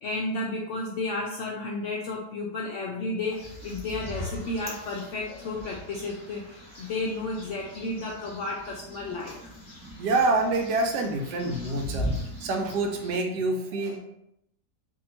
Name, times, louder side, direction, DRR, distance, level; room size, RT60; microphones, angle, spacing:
voice 1, 0.0-9.4 13.8-14.0, left 2 dB, 75° left, -2 dB, 0.7 m, -32 dB
sound 1, 3.2-13.2, left 1 dB, 5° left, 0.9 m, -39 dB
voice 2, 10.0-12.1 12.4-14.0, right 2 dB, 85° right, 3 dB, 1.2 m, -26 dB
2.8 x 2.7 x 4.1 m, 0.78 s
omnidirectional pair, 1.7 m